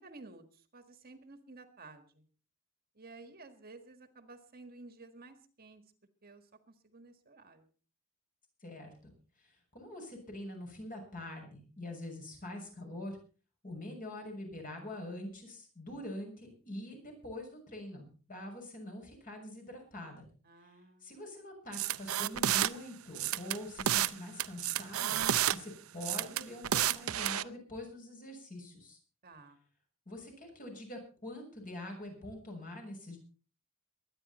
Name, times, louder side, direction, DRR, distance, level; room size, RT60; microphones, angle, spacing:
voice 1, 0.0-2.2 2.9-5.8 6.2-7.7 20.4-21.1 29.2-29.6, right 3 dB, 45° right, 8 dB, 1.7 m, -53 dB
voice 2, 8.6-9.1 9.4-13.2 13.6-20.2 21.0-25.2 25.5-29.0 30.1-33.2, left 1 dB, 40° left, 2 dB, 6.5 m, -44 dB
sound 1, 21.7-22.7 23.1-24.1 24.4-25.6 26.0-27.4, right 11 dB, 70° right, 0.6 m, -30 dB
23.0 x 10.0 x 4.3 m, 0.38 s
head